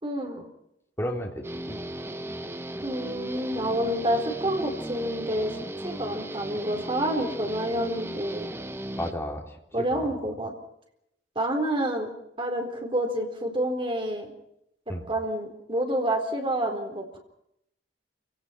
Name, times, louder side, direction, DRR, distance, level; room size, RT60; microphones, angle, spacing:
voice 1, 0.0-0.4 2.8-5.6 5.8-8.5 9.7-10.5 11.4-12.1 12.4-14.3 15.1-17.2, right 1 dB, 30° right, 3 dB, 4.2 m, -28 dB
voice 2, 1.0-1.8 9.0-10.1 14.9-15.1, equal, 15° left, 1 dB, 3.4 m, -33 dB
Guitar, 1.4-9.1, right 1 dB, 15° right, 0.8 m, -36 dB
28.5 x 18.0 x 6.0 m, 0.78 s
head